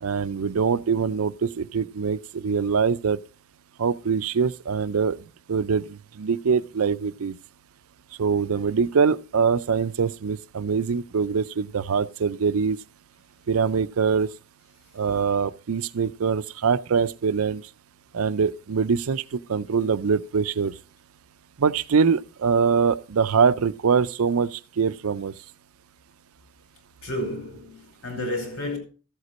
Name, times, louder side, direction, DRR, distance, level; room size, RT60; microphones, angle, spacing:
voice 1, 0.0-3.2 3.8-5.2 5.5-7.3 8.2-12.8 13.5-14.3 15.0-17.6 18.1-20.7 21.6-25.3, right 5 dB, 85° right, 0.5 m, -23 dB
voice 2, 27.0-28.8, left 1 dB, 80° left, 5.1 m, -31 dB
14.0 x 8.1 x 4.1 m
head